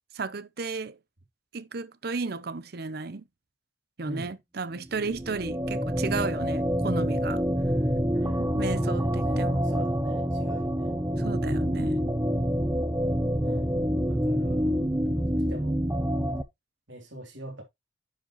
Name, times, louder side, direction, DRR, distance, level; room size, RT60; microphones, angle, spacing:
voice 1, 0.1-1.0 1.5-3.2 4.0-7.4 8.4-9.7 11.2-12.0, right 4 dB, 50° right, 0.6 m, -33 dB
voice 2, 4.0-4.4 8.1-11.0 13.4-13.8 14.1-14.8 15.1-15.8 16.9-17.6, right 1 dB, 70° right, 3.1 m, -43 dB
sound 1, 4.9-16.4, equal, 15° right, 0.7 m, -27 dB
10.5 x 5.2 x 3.0 m
head